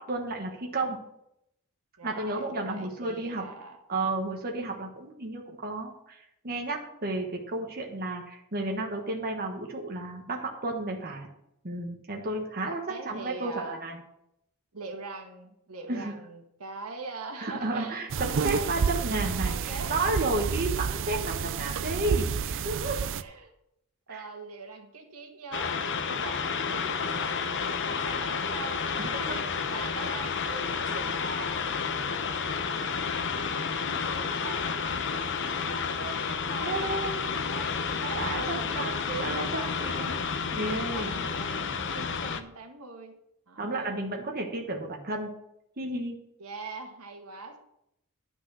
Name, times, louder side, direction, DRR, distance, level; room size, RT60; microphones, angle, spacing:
voice 1, 0.1-1.0 2.0-3.4 3.9-6.2 6.4-11.3 11.6-14.0 15.9-16.1 17.4-23.0 24.1-24.2 29.0-29.4 33.9-34.4 36.6-37.4 38.1-40.2 40.5-41.2 43.6-45.3 45.8-46.2, right 2 dB, 45° right, 1 dB, 1.3 m, -32 dB
voice 2, 2.0-3.8 12.9-13.9 14.7-18.9 19.3-20.0 23.1-23.5 24.1-28.8 29.7-31.6 34.4-35.1 35.7-36.9 37.4-40.3 40.9-43.2 43.5-43.8 46.4-47.6, right 3 dB, 85° right, 3 dB, 1.7 m, -42 dB
sound 1, 18.1-23.2, right 6 dB, 60° right, 0.5 m, -30 dB
sound 2, 25.5-42.4, left 5 dB, 55° left, 0.7 m, -31 dB
10.5 x 6.2 x 6.3 m, 0.78 s
head